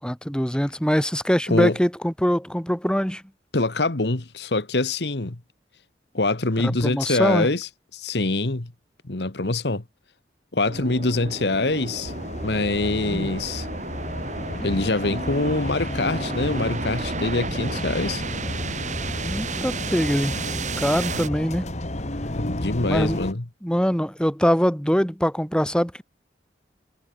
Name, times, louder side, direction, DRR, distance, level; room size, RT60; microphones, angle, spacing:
voice 1, 0.0-3.2 6.6-7.5 13.1-13.3 19.1-20.4 20.8-21.7 22.8-23.2 23.6-26.0, equal, 5° left, 4.1 m, -23 dB
voice 2, 3.5-5.4 6.1-8.7 9.1-9.8 10.5-12.1 12.4-13.7 14.6-18.2 22.3-23.4, left 2 dB, 70° left, 1.5 m, -24 dB
sound 1, 10.6-21.3, right 3 dB, 45° right, 7.2 m, -32 dB
sound 2, 12.0-23.3, left 1 dB, 40° left, 2.1 m, -32 dB
head